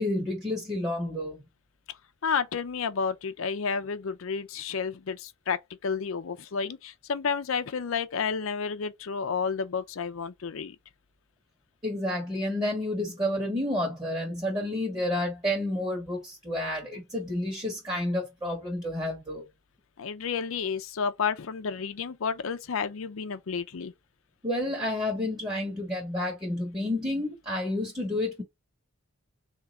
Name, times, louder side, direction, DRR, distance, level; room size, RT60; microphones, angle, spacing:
voice 1, 0.0-1.4 11.8-19.4 24.4-28.4, left 1 dB, 20° right, 1.4 m, -30 dB
voice 2, 2.2-10.8 20.0-23.9, left 6 dB, 85° left, 0.5 m, -31 dB
3.6 x 2.9 x 4.2 m
head